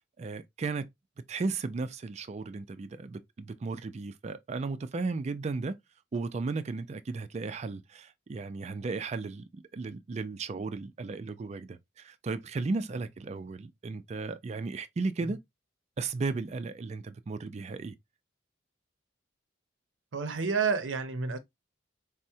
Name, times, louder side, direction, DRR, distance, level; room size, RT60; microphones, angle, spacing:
voice 1, 0.2-0.9 1.3-5.7 6.1-9.4 9.7-15.4 16.0-17.9, right 3 dB, 35° right, 0.3 m, -35 dB
voice 2, 20.1-21.4, right 5 dB, 85° right, 0.6 m, -29 dB
4.4 x 2.0 x 2.6 m
head